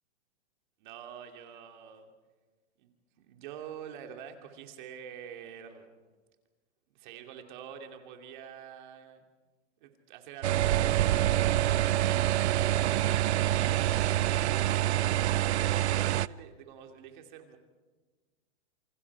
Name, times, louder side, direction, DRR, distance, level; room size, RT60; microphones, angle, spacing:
voice 1, 0.8-2.1 2.8-2.9 3.2-5.9 6.9-9.3 9.8-12.3 13.4-17.6, right 8 dB, 40° right, 4 dB, 2.7 m, -46 dB
sound 1, 10.4-16.3, right 13 dB, 70° right, 0.6 m, -26 dB
28.0 x 26.0 x 4.8 m, 1.3 s
hypercardioid pair, 155°, 35 cm